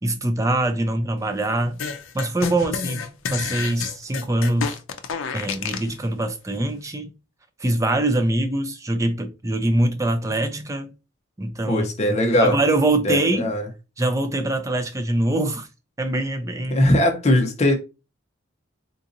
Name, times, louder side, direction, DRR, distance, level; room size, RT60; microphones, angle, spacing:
voice 1, 0.0-1.8 2.1-4.7 5.3-7.1 7.6-10.9 11.4-13.5 14.0-15.7 16.0-16.9, right 1 dB, 15° right, 0.4 m, -23 dB
sound 1, 1.8-5.9, left 6 dB, 80° left, 0.5 m, -29 dB
voice 2, 11.7-12.6 13.0-13.7 16.7-17.7, left 1 dB, 35° left, 0.7 m, -20 dB
3.8 x 2.8 x 2.5 m
head